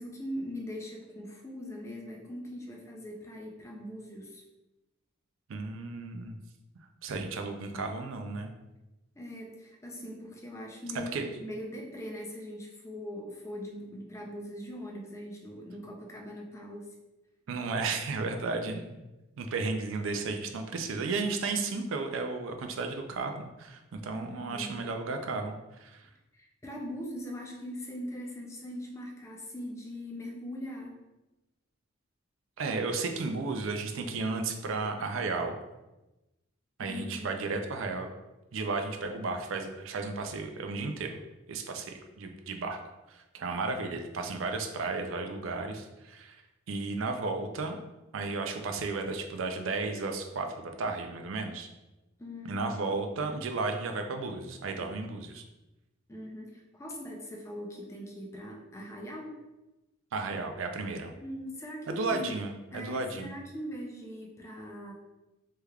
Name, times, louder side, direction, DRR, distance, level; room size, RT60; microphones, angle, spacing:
voice 1, 0.0-4.4 9.2-16.9 24.1-24.8 26.3-31.0 36.8-37.5 52.2-52.6 56.1-59.4 61.2-62.3 62.7-64.9, equal, 15° left, 0 dB, 0.4 m, -41 dB
voice 2, 5.5-6.3 7.0-8.5 11.1-11.2 17.5-19.0 19.4-26.1 32.6-35.6 36.8-38.1 38.5-41.2 41.5-42.8 43.1-46.4 46.7-47.8 48.1-51.7 52.4-55.4 60.1-61.1 61.9-63.3, right 3 dB, 70° right, 5 dB, 0.4 m, -34 dB
3.3 x 3.2 x 2.3 m, 1.0 s
head